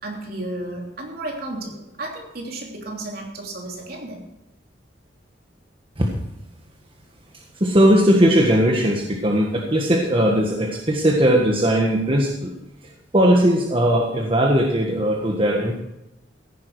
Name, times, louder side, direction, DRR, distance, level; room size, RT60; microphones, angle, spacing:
voice 1, 0.0-4.2, right 2 dB, 55° right, 0 dB, 3.3 m, -33 dB
voice 2, 7.3-12.5 12.8-15.8, equal, 30° right, 0 dB, 1.5 m, -19 dB
15.0 x 10.5 x 4.8 m, 0.91 s
head